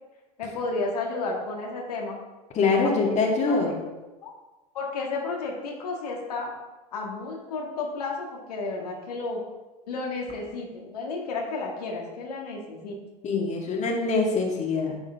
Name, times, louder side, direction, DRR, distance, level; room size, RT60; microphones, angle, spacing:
voice 1, 0.4-2.2 2.8-3.1 3.4-3.6 4.2-4.3 4.7-6.5 6.9-9.4 9.9-13.0, left 3 dB, 85° left, -1 dB, 1.8 m, -32 dB
voice 2, 2.5-3.7 12.8-12.9 13.2-15.0, left 4 dB, 35° left, 0 dB, 2.0 m, -24 dB
9.6 x 7.1 x 3.5 m, 1.2 s
hypercardioid pair, 90°, 20 cm